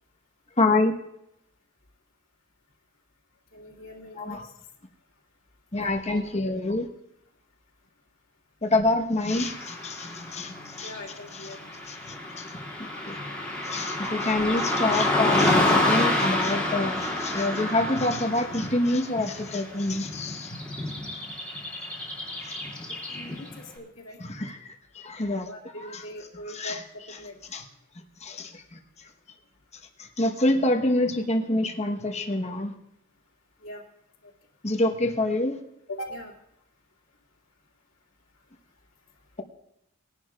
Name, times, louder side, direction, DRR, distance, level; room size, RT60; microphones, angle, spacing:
voice 1, 0.6-0.9 4.2-4.4 5.7-6.9 8.6-10.9 11.9-12.4 12.8-13.1 13.6-20.9 22.4-22.6 24.2-24.6 24.9-25.5 26.5-26.8 27.5-27.6 28.2-28.8 30.0-32.7 34.6-35.6, left 2 dB, 35° left, 3 dB, 1.2 m, -26 dB
voice 2, 3.5-4.5 6.1-6.2 10.8-11.8 23.1-24.2 25.4-27.4 33.6-33.8 34.2-34.3 35.9-36.3, left 1 dB, 75° left, -1 dB, 2.3 m, -41 dB
Car passing by / Traffic noise roadway noise, 9.3-23.6, left 1 dB, 5° left, 2.5 m, -29 dB
20.5 x 11.0 x 2.4 m, 0.82 s
head